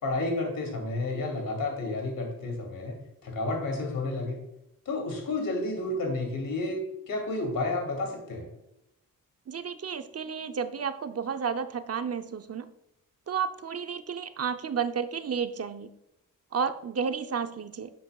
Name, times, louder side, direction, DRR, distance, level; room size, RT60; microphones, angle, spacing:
voice 1, 0.0-3.0 3.2-4.4 4.9-8.5, left 2 dB, 80° left, 2 dB, 2.8 m, -31 dB
voice 2, 9.5-12.7 13.3-15.9 16.5-17.9, right 6 dB, 45° right, 9 dB, 0.7 m, -32 dB
10.5 x 7.6 x 2.4 m, 0.84 s
cardioid pair, 70°, 34 cm